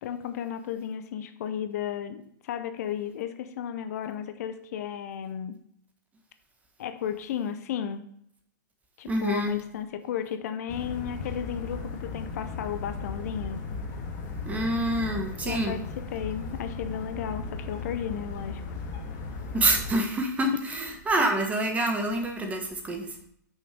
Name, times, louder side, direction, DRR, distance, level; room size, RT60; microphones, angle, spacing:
voice 1, 0.0-5.6 6.8-8.1 9.0-13.7 15.4-18.6, left 9 dB, 55° left, 10 dB, 0.7 m, -34 dB
voice 2, 9.1-9.6 14.4-15.8 19.5-23.3, right 1 dB, 15° right, 3 dB, 1.4 m, -27 dB
sound 1, 10.7-19.9, left 4 dB, 35° left, 1.7 m, -36 dB
6.3 x 5.3 x 5.1 m, 0.70 s
hypercardioid pair, 115°, 10 cm